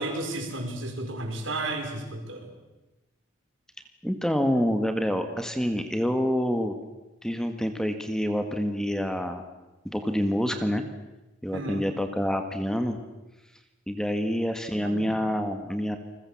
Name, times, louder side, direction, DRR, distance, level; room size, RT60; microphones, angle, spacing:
voice 1, 0.0-2.5 11.5-11.9 14.7-15.1, right 2 dB, 70° right, 4 dB, 5.7 m, -33 dB
voice 2, 4.0-6.7 7.2-9.4 9.8-10.8 11.4-13.0 13.9-16.0, equal, 5° left, 7 dB, 1.7 m, -27 dB
29.0 x 21.5 x 7.4 m, 1.0 s
head